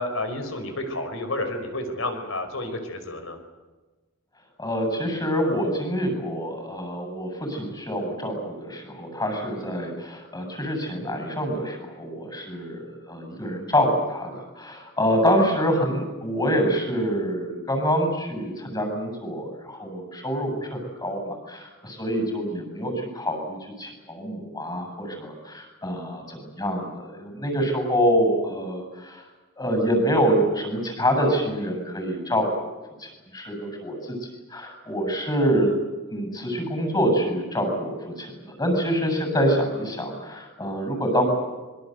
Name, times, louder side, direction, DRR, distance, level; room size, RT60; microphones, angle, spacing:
voice 1, 0.0-3.4, left 2 dB, 70° left, 7 dB, 5.2 m, -30 dB
voice 2, 4.6-29.2 29.6-32.7 33.0-34.2 34.5-35.7 36.1-41.3, equal, 20° left, 5 dB, 7.8 m, -26 dB
26.0 x 23.5 x 8.1 m, 1.2 s
head